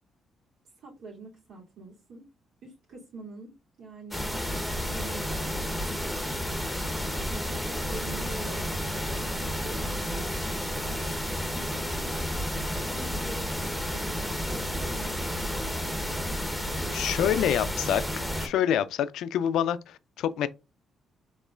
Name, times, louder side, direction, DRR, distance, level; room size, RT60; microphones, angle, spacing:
voice 1, 0.8-2.2 2.6-3.5 3.8-4.3 4.6-6.4 7.3-10.4 10.8-12.1 12.8-13.5 13.9-16.0 16.7-17.0, right 3 dB, 75° right, 2.8 m, -45 dB
sound 1, 4.1-18.5, equal, ahead, 1.0 m, -31 dB
voice 2, 16.9-20.5, left 10 dB, 80° left, 0.4 m, -27 dB
5.3 x 3.6 x 2.4 m
cardioid pair, 90°, 0 cm